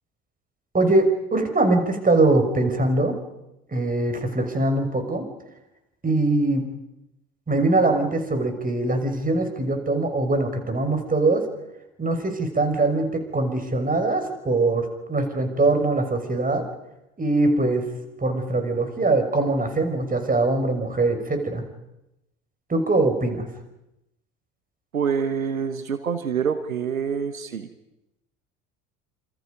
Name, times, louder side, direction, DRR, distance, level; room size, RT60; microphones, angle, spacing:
voice 1, 0.7-3.2 3.7-5.3 6.0-6.6 7.5-11.4 12.0-16.6 17.2-17.8 18.2-21.6 22.7-23.5, right 2 dB, 20° right, 6 dB, 6.1 m, -22 dB
voice 2, 24.9-27.7, right 6 dB, 85° right, 10 dB, 1.4 m, -26 dB
28.0 x 27.5 x 5.4 m, 0.90 s
figure-of-eight pair, 60°, 40 cm